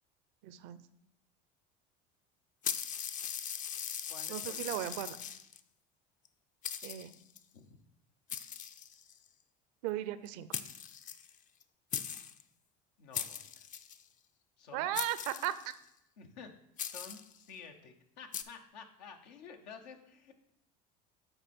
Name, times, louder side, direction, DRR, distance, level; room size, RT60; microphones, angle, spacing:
voice 1, 0.4-0.8 4.3-5.2 6.8-7.1 9.8-10.5 14.7-15.7, right 13 dB, 75° right, 14 dB, 0.5 m, -36 dB
sound 1, 2.6-5.6 6.3-6.4 6.6-7.4 8.3-9.3 10.3-10.4 10.5-11.6 11.9-12.4 13.1-14.0 14.9-15.8 16.8-17.4 18.3-18.4, left 8 dB, 40° left, 0.5 m, -40 dB
voice 2, 4.1-4.9 7.5-7.8 13.0-13.7 14.6-14.9 16.2-16.5 16.8-20.5, left 5 dB, 90° left, 5 dB, 0.9 m, -52 dB
7.9 x 4.4 x 4.3 m, 0.77 s
supercardioid pair, 90°, 21 cm